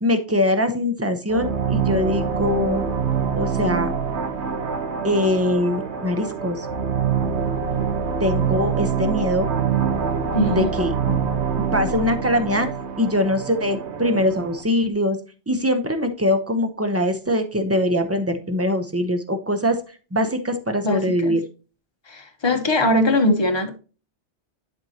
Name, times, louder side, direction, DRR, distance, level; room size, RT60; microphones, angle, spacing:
voice 1, 0.0-2.8 3.3-3.9 5.0-6.7 8.2-9.5 10.4-11.2 11.7-12.7 13.0-15.2 15.5-19.8 20.1-21.4, left 1 dB, 15° right, 0.7 m, -22 dB
sound 1, 1.3-14.6, right 6 dB, 75° right, 1.2 m, -25 dB
voice 2, 10.3-10.7 20.8-21.4 22.1-23.8, left 1 dB, 25° left, 1.0 m, -21 dB
11.0 x 4.5 x 2.9 m
omnidirectional pair, 1.2 m